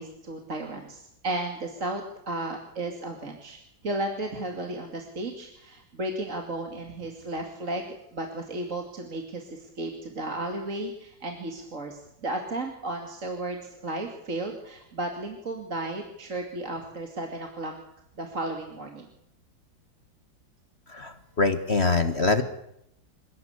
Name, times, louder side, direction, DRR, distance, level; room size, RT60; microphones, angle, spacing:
voice 1, 0.0-3.6 3.8-17.7 18.2-19.1, right 2 dB, 40° right, 2 dB, 2.8 m, -34 dB
voice 2, 20.9-22.4, left 3 dB, 35° left, 9 dB, 1.5 m, -24 dB
27.5 x 16.5 x 8.2 m, 0.76 s
omnidirectional pair, 2.1 m